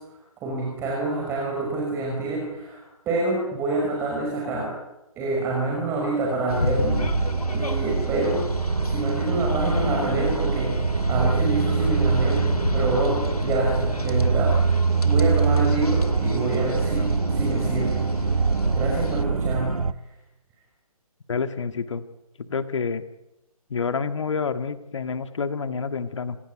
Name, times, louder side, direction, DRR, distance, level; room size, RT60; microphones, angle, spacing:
voice 1, 0.0-4.7 5.2-8.5 8.9-10.8 11.1-12.4 12.7-14.6 15.0-18.5 18.7-19.8, right 2 dB, 15° right, -2 dB, 5.8 m, -27 dB
sound 1, 6.5-19.2, left 3 dB, 80° left, 2.2 m, -31 dB
sound 2, 6.9-19.9, right 5 dB, 75° right, 1.0 m, -24 dB
voice 2, 21.3-22.1 22.5-23.0 23.7-26.4, left 5 dB, 55° left, 10 dB, 1.8 m, -28 dB
28.0 x 18.0 x 9.6 m, 0.94 s
figure-of-eight pair, 145°, 19 cm